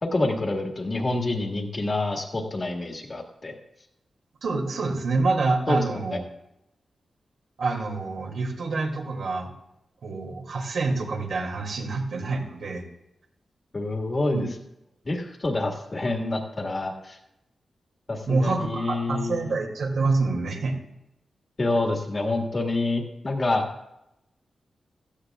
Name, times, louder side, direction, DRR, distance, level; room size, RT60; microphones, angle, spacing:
voice 1, 0.0-3.6 5.7-5.8 6.1-6.2 13.7-14.5 15.1-17.2 18.1-19.5 21.6-23.6, left 2 dB, 30° left, 2 dB, 1.8 m, -27 dB
voice 2, 4.4-6.2 7.6-9.5 10.0-12.8 14.3-14.5 18.3-20.8, right 3 dB, 75° right, 0 dB, 2.5 m, -26 dB
16.5 x 14.5 x 2.4 m, 0.86 s
wide cardioid pair, 150°, 0 cm